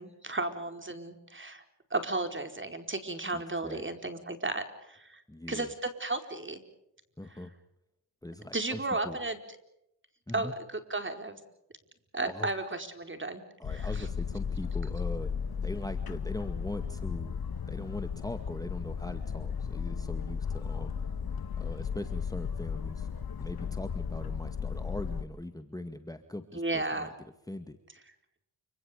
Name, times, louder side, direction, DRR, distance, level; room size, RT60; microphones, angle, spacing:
voice 1, 0.0-1.6 1.9-5.2 5.5-6.6 8.5-9.4 10.3-11.4 12.1-13.4 13.7-13.9 26.5-27.1, right 2 dB, 25° right, 7 dB, 4.6 m, -34 dB
voice 2, 3.3-3.8 5.3-5.7 7.2-7.5 8.2-9.2 10.3-10.5 12.3-12.5 13.6-15.3 15.6-17.4 17.7-20.9 21.6-23.1 23.4-27.8, left 1 dB, 10° left, 8 dB, 2.1 m, -41 dB
Boat Water vehicle, 13.6-25.2, left 6 dB, 50° left, 1.8 m, -35 dB
29.5 x 26.5 x 5.2 m, 0.81 s
cardioid pair, 65°, 46 cm